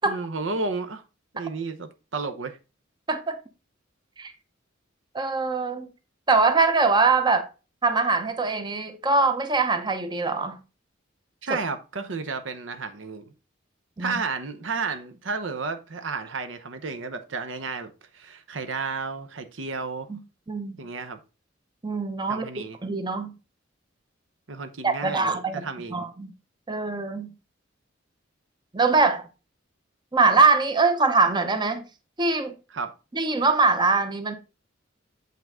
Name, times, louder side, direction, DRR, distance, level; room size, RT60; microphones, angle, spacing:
voice 1, 0.0-1.0 1.3-2.6 11.4-13.2 14.0-20.1 20.8-21.2 22.3-22.8 24.5-26.1 32.7-32.9, right 4 dB, 70° right, 0.8 m, -32 dB
voice 2, 5.1-5.9 6.3-7.5 7.8-10.6 11.5-11.6 14.0-14.2 20.1-20.2 20.5-20.8 21.8-22.5 22.8-23.3 24.8-26.3 26.7-27.3 28.7-29.2 30.1-31.8 32.2-32.5 33.1-34.3, right 3 dB, 25° right, 0.7 m, -22 dB
7.4 x 5.7 x 3.6 m
head